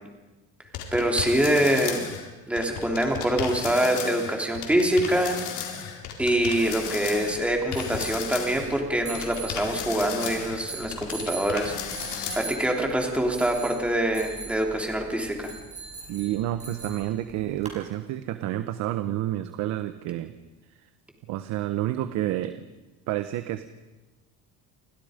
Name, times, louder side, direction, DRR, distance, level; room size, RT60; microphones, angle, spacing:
sound 1, 0.7-2.3 2.5-8.8 9.1-12.4, left 8 dB, 65° left, 4.6 m, -34 dB
voice 1, 0.9-2.0 2.5-5.4 6.2-11.9 12.3-15.5, right 1 dB, 5° right, 1 dB, 3.4 m, -25 dB
sound 2, 6.2-17.8, right 4 dB, 20° right, 5.8 m, -42 dB
voice 2, 16.1-20.3 20.7-20.8 21.3-22.7 23.1-23.7, right 13 dB, 60° right, 10 dB, 1.2 m, -29 dB
29.0 x 25.0 x 5.2 m, 1.1 s
cardioid pair, 170°, 32 cm